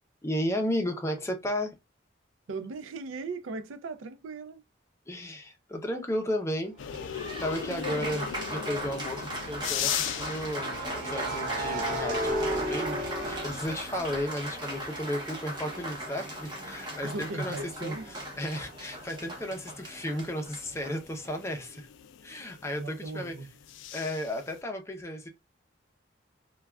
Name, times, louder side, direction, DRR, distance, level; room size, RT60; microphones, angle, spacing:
voice 1, 0.2-1.7 5.1-6.7 7.0-21.9 22.2-23.4 23.9-25.3, left 1 dB, 15° left, 0.5 m, -34 dB
voice 2, 2.5-4.7 17.0-18.1 22.8-23.5, right 3 dB, 85° right, 0.4 m, -38 dB
sound 1, 6.8-24.6, left 9 dB, 70° left, 0.3 m, -41 dB
Applause, 6.8-21.5, right 1 dB, 25° right, 0.7 m, -38 dB
sound 2, 7.2-7.4 10.5-14.4 14.8-18.4, right 1 dB, 40° right, 1.2 m, -35 dB
3.2 x 2.3 x 2.3 m
head